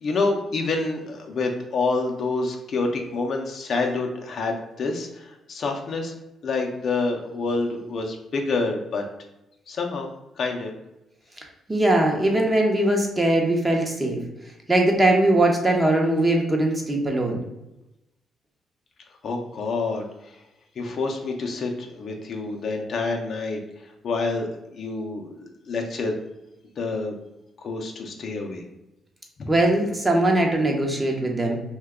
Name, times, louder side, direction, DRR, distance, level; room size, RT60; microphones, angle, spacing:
voice 1, 0.0-6.1 6.4-9.0 9.7-10.1 10.4-10.7 19.2-20.1 20.8-23.6 24.0-26.2 26.8-27.2 27.6-28.6 29.4-29.5, left 3 dB, 55° left, 2 dB, 0.5 m, -27 dB
voice 2, 11.7-14.2 14.7-17.4 29.5-31.6, right 1 dB, 20° right, 1 dB, 0.7 m, -21 dB
2.8 x 2.2 x 3.5 m, 0.93 s
cardioid pair, 90°, 0 cm